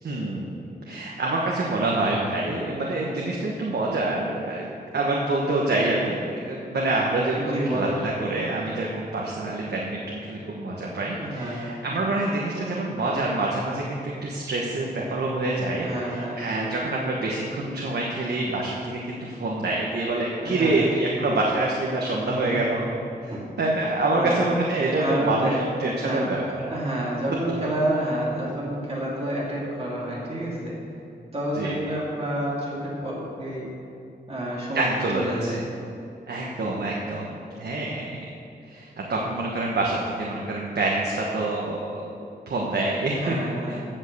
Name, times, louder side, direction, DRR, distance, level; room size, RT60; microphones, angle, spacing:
voice 1, 0.0-22.9 23.2-23.3 23.6-25.5 25.8-26.4 31.5-31.8 34.7-35.6 36.3-38.2 38.7-42.0 42.5-43.3 43.7-43.8, right 2 dB, 70° right, -3 dB, 1.4 m, -26 dB
voice 2, 7.3-8.0 11.2-11.7 15.8-16.5 20.4-20.8 22.2-22.8 23.3-23.4 24.1-24.4 25.0-25.6 26.0-30.7 31.3-33.7 34.3-35.6 43.1-43.9, right 1 dB, 35° right, -6 dB, 2.6 m, -29 dB
16.0 x 5.5 x 6.9 m, 2.6 s
wide cardioid pair, 180°, 18 cm